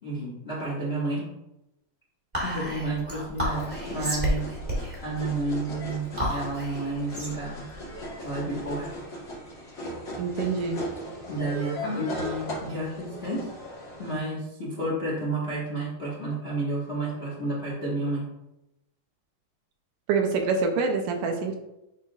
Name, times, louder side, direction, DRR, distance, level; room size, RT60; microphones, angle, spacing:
voice 1, 0.0-1.2 2.4-4.5 5.0-7.6 8.2-8.9 11.3-13.5 14.0-18.2, right 2 dB, 65° left, -6 dB, 0.6 m, -31 dB
Whispering, 2.3-9.0, equal, 15° right, 1.7 m, -32 dB
sound 1, 3.5-14.2, equal, 35° left, 2.4 m, -37 dB
voice 2, 10.2-10.8 20.1-21.6, right 4 dB, 75° right, 4 dB, 2.2 m, -26 dB
10.5 x 4.4 x 2.4 m, 0.89 s
omnidirectional pair, 4.0 m